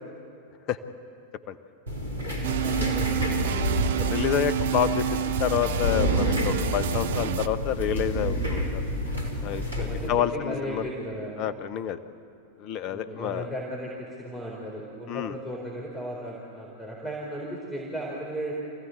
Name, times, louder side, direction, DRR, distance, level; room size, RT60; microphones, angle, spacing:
sound 1, 1.9-10.1, equal, 80° right, 3.6 m, -29 dB
sound 2, 2.4-7.5, right 9 dB, 60° right, 0.8 m, -29 dB
voice 1, 2.6-4.2 9.4-11.4 12.9-18.5, equal, 5° left, -3 dB, 4.2 m, -36 dB
voice 2, 3.9-5.0 5.4-8.8 9.4-10.9 11.4-12.0 12.6-13.5 15.1-15.3, left 10 dB, 40° left, 13 dB, 0.9 m, -28 dB
26.5 x 16.0 x 8.1 m, 2.5 s
figure-of-eight pair, 90°, 0 cm